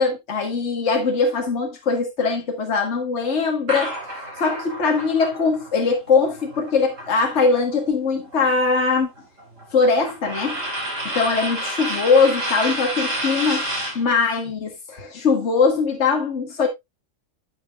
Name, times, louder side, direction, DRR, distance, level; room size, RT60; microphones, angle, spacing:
voice 1, 0.0-3.9 4.4-9.1 9.7-10.6 11.1-13.7 14.0-16.7, left 4 dB, 60° left, 1.9 m, -21 dB
sound 1, 3.7-7.7 8.1-14.0, right 1 dB, 75° right, 4.5 m, -30 dB
9.4 x 8.9 x 2.4 m
omnidirectional pair, 1.3 m